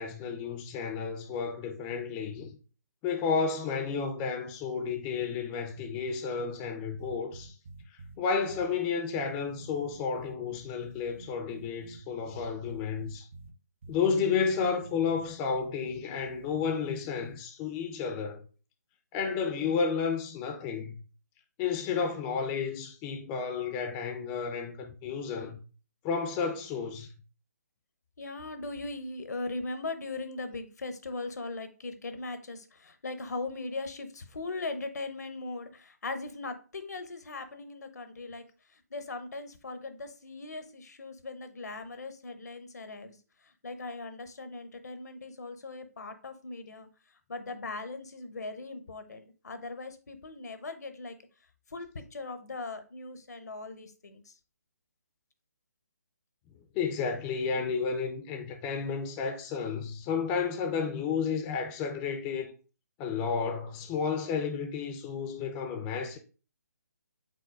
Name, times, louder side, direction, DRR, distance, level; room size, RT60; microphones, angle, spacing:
voice 1, 0.0-2.5 3.0-7.5 7.9-13.3 13.9-18.4 19.1-21.0 21.6-25.6 26.0-27.1 56.7-62.5 63.0-66.2, left 5 dB, 15° left, 0.4 m, -32 dB
sound 1, 7.0-8.2 8.5-8.7 9.1-12.0 12.3-13.5 13.8-14.0 14.5-17.3, right 2 dB, 45° right, 0.5 m, -48 dB
voice 2, 28.2-38.4 38.7-43.2 43.4-46.9 47.3-51.2 51.7-54.3, left 3 dB, 70° left, 0.7 m, -39 dB
4.9 x 3.7 x 2.3 m
figure-of-eight pair, 150°, 9 cm